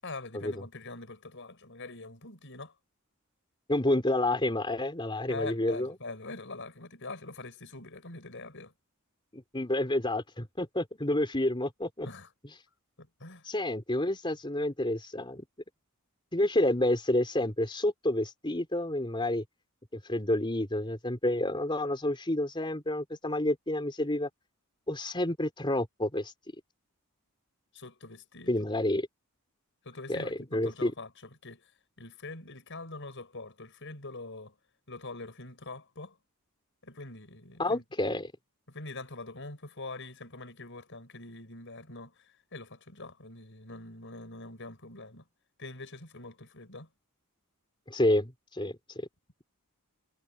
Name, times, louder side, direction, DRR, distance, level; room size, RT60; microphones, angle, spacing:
voice 1, 0.0-2.7 5.3-8.7 12.0-12.3 13.0-13.5 27.7-28.6 29.8-31.1 31.4-31.7 32.0-34.5 34.9-36.2 36.8-37.8 38.7-45.2 45.6-46.9, left 2 dB, 55° left, 6.0 m, -44 dB
voice 2, 3.7-5.9 9.3-12.1 13.4-15.4 16.3-19.4 19.9-24.3 24.9-26.3 28.5-29.1 30.1-30.9 37.6-38.3 47.9-49.1, left 1 dB, 20° left, 3.9 m, -29 dB
head